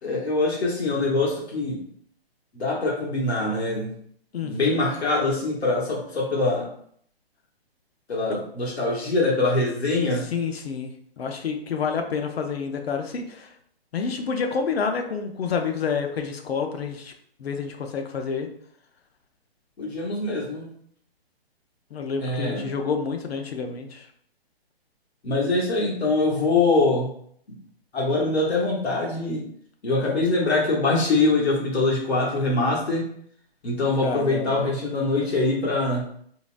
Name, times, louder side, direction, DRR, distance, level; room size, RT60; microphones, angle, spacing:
voice 1, 0.0-1.8 2.5-3.9 4.4-6.7 8.1-10.2 19.8-20.7 22.2-22.7 25.2-27.1 27.5-27.6 27.9-29.4 29.8-33.0 33.6-36.1, left 2 dB, 85° left, -3 dB, 1.2 m, -23 dB
voice 2, 4.3-4.8 8.3-8.4 10.3-10.9 11.2-13.5 13.9-17.1 17.4-18.5 21.9-24.1 34.0-34.7, left 5 dB, 70° left, 5 dB, 0.6 m, -28 dB
3.8 x 2.2 x 2.5 m, 0.63 s
hypercardioid pair, 155°, 31 cm